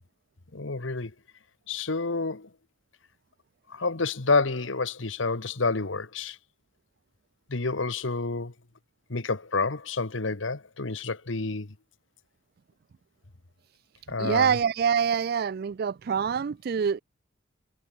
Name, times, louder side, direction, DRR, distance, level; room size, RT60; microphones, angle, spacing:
voice 1, 0.5-1.1 1.7-2.5 3.7-6.4 7.5-8.5 9.1-11.7 14.1-14.6, left 3 dB, 75° left, 1.4 m, -29 dB
voice 2, 14.2-17.0, right 7 dB, 50° right, 0.3 m, -25 dB
head